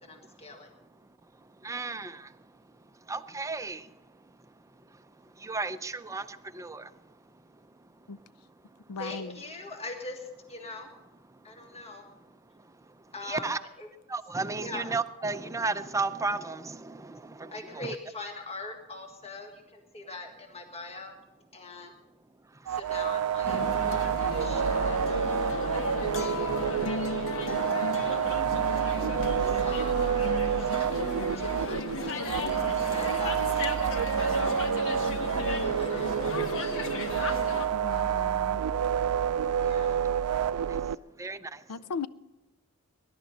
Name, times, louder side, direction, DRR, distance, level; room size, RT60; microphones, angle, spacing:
voice 1, 0.0-0.7 9.0-10.9 11.4-12.0 13.1-13.9 14.6-14.9 17.5-21.1 21.5-21.9 22.7-28.0 28.8-30.3 30.6-30.9 31.4-32.4 32.7-33.7 34.1-34.4 35.4-36.6 39.6-40.0, left 2 dB, 30° left, 1.6 m, -43 dB
voice 2, 1.6-2.2 3.1-3.8 5.4-6.2 6.5-6.8 13.2-13.6 14.1-17.1 17.4-17.9 41.2-41.4, right 3 dB, 15° right, 0.5 m, -33 dB
voice 3, 8.9-9.4 37.7-38.6 41.7-42.1, left 5 dB, 85° left, 0.5 m, -36 dB
sound 1, 22.7-41.0, right 8 dB, 80° right, 0.4 m, -29 dB
sound 2, 23.4-37.7, left 2 dB, 65° left, 1.3 m, -34 dB
20.0 x 11.0 x 4.1 m
head